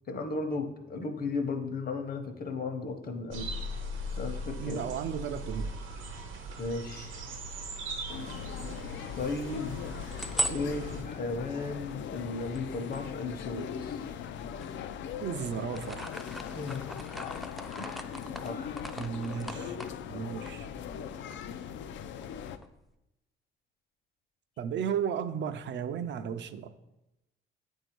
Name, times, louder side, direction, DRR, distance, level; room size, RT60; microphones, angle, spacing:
voice 1, 0.1-3.5 4.1-4.8 6.6-7.2 9.2-9.9 10.5-14.1 16.5-17.2 17.8-18.1 18.4-18.8 19.5-20.3, left 3 dB, 50° left, 6 dB, 0.9 m, -36 dB
sound 1, 3.3-11.0, equal, 85° right, 0.9 m, -39 dB
voice 2, 4.6-5.7 15.2-16.1 19.0-19.8 20.1-20.7 24.6-26.7, right 8 dB, 65° right, 10 dB, 0.5 m, -34 dB
sound 2, 8.1-22.6, left 8 dB, 70° left, 0.4 m, -40 dB
sound 3, 10.0-13.9 14.4-15.2 15.5-21.0 21.3-21.4 21.7-22.9, equal, ahead, 0.4 m, -39 dB
8.0 x 2.7 x 4.5 m, 0.92 s
cardioid pair, 90°, 20 cm